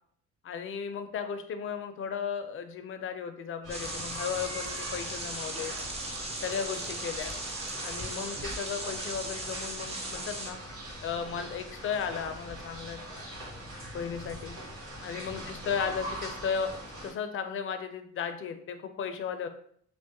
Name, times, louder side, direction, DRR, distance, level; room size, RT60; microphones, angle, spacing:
voice 1, 0.4-5.7 6.4-7.4 7.8-10.6 11.0-13.0 13.9-14.5 15.0-19.5, left 7 dB, 45° left, 7 dB, 0.4 m, -35 dB
sound 1, 3.6-17.1, right 1 dB, 80° right, 1.4 m, -42 dB
sound 2, 3.7-10.5, right 2 dB, 20° right, 0.5 m, -38 dB
2.6 x 2.1 x 2.6 m, 0.63 s
cardioid pair, 90°, 30 cm